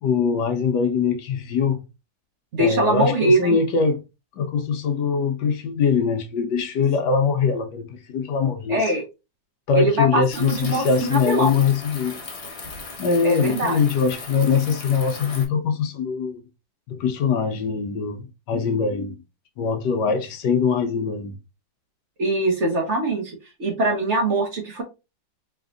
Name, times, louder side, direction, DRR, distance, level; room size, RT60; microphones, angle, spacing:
voice 1, 0.0-1.8 2.6-4.0 4.4-8.8 9.7-12.2 13.0-16.4 16.9-19.2 19.6-21.3, left 5 dB, 70° left, 1.2 m, -22 dB
voice 2, 2.5-3.6 8.7-9.0 9.8-11.5 13.2-13.8 22.2-24.8, right 1 dB, 50° right, 1.0 m, -22 dB
sound 1, 10.3-15.5, left 3 dB, 40° left, 1.2 m, -37 dB
4.0 x 3.4 x 2.5 m
omnidirectional pair, 2.0 m